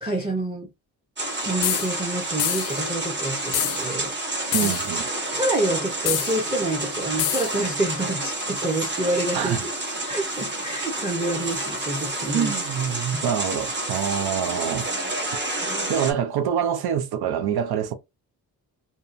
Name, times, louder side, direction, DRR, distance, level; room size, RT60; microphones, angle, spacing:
voice 1, 0.0-0.7 1.4-4.1 4.6-4.7 5.3-9.7 10.1-12.5 13.1-13.3 15.6-15.7, right 2 dB, 15° right, 0.6 m, -28 dB
sound 1, 1.2-16.1, right 2 dB, 30° right, 0.9 m, -29 dB
sound 2, 1.6-1.9 2.4-2.8 3.5-3.8 4.5-4.9 6.1-6.3 7.2-7.5, left 12 dB, 80° left, 0.5 m, -25 dB
voice 2, 4.5-5.1 9.3-9.7 12.3-14.9 15.9-17.9, right 8 dB, 80° right, 0.5 m, -25 dB
2.7 x 2.2 x 2.4 m
cardioid pair, 110°, 38 cm